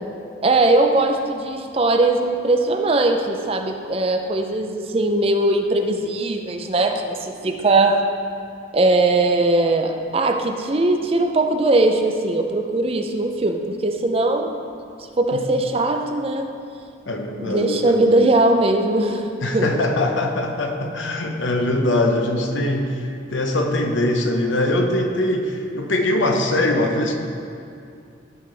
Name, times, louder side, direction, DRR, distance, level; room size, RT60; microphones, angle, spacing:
voice 1, 0.4-8.2 8.7-14.5 15.2-16.5 17.4-19.9, right 2 dB, 30° right, 4 dB, 0.5 m, -20 dB
voice 2, 17.1-18.2 19.4-23.0 23.3-27.2, left 1 dB, 75° left, 3 dB, 0.9 m, -22 dB
13.5 x 5.9 x 3.4 m, 2.5 s
head